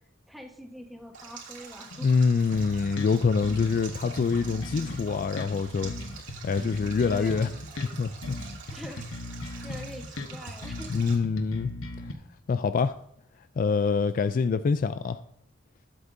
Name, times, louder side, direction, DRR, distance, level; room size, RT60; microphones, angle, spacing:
voice 1, 0.3-2.1 6.8-7.5 8.7-9.4 9.6-11.1, equal, ahead, 1.2 m, -44 dB
Stream, 1.1-11.2, right 5 dB, 65° right, 2.7 m, -46 dB
voice 2, 2.0-5.9 6.4-7.5 8.0-8.4 10.9-11.7 12.1-12.2 12.5-13.0 13.6-15.2, left 5 dB, 45° left, 0.3 m, -25 dB
sound 1, 2.5-12.1, left 2 dB, 85° left, 1.0 m, -38 dB
19.5 x 8.0 x 2.6 m
head